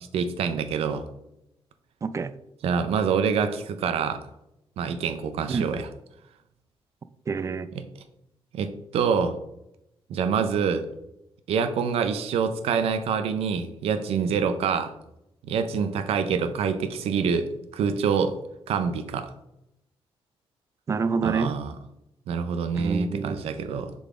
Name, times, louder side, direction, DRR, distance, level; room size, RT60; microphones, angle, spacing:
voice 1, 0.1-1.1 2.6-4.2 4.8-5.9 7.7-7.8 8.5-9.3 10.1-10.8 11.5-14.9 15.4-17.5 17.7-18.3 18.7-19.3 21.2-21.7 22.3-23.9, right 6 dB, 90° right, 9 dB, 0.6 m, -26 dB
voice 2, 2.0-2.3 5.5-5.7 7.3-7.7 20.9-21.6 22.8-23.4, right 5 dB, 30° right, 13 dB, 0.4 m, -27 dB
6.7 x 4.0 x 3.6 m, 0.84 s
cardioid pair, 125°, 10 cm